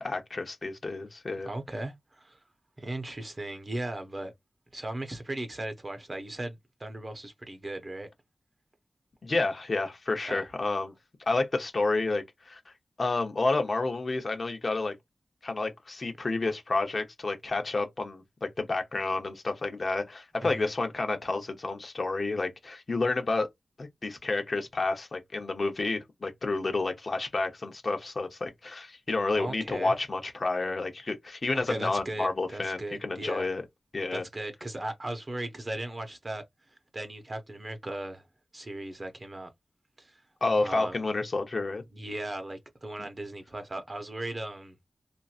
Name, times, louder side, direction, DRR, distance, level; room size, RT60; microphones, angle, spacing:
voice 1, 0.0-1.5 9.2-10.9 11.3-12.7 13.0-14.9 15.4-23.5 23.8-33.6 33.9-34.2 40.4-41.8, left 3 dB, 50° left, 0.9 m, -30 dB
voice 2, 1.4-2.4 2.8-4.3 4.7-8.1 10.2-10.4 20.4-20.7 29.3-30.0 31.5-33.5 34.1-38.3 38.5-39.5 40.0-40.2 40.6-41.0 41.9-44.8, right 1 dB, 35° right, 0.8 m, -37 dB
3.0 x 2.5 x 2.4 m
wide cardioid pair, 80°, 0 cm